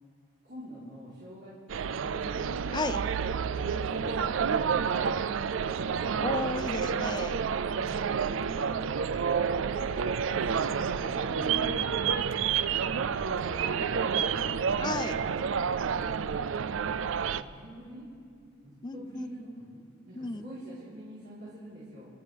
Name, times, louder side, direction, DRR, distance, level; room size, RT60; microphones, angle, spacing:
voice 1, 0.4-2.3 3.6-5.8 7.7-9.3 9.6-11.4 12.1-12.5 12.9-14.8 15.9-16.3 17.3-18.1 18.6-19.8 20.1-22.1, equal, 60° right, -11 dB, 4.0 m, -46 dB
sound 1, 1.7-17.4, right 6 dB, 90° right, 0.4 m, -29 dB
voice 2, 6.2-7.4 11.3-11.9 14.8-15.2 18.8-19.3 20.2-20.4, left 3 dB, 20° left, 11 dB, 0.4 m, -34 dB
28.5 x 12.0 x 3.5 m, 2.3 s
head